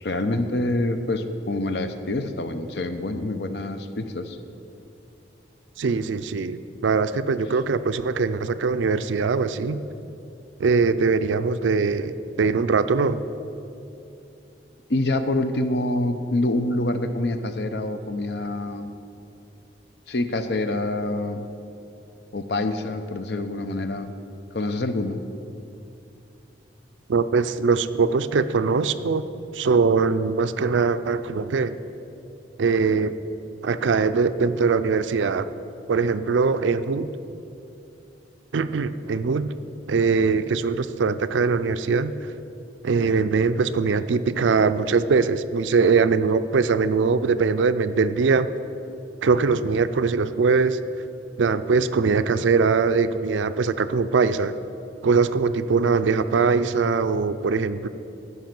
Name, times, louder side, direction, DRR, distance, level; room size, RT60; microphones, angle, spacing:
voice 1, 0.0-4.4 14.9-18.9 20.1-21.5 22.3-24.1 24.5-25.2, left 2 dB, 65° left, 9 dB, 0.6 m, -26 dB
voice 2, 5.8-9.8 10.6-13.2 27.1-29.2 29.5-31.8 32.6-33.2 33.6-35.5 35.9-37.1 38.5-39.5 39.9-42.1 42.8-48.5 49.2-50.8 51.4-54.5 55.0-57.9, right 4 dB, 85° right, 12 dB, 0.4 m, -22 dB
14.5 x 5.5 x 6.0 m, 2.8 s
head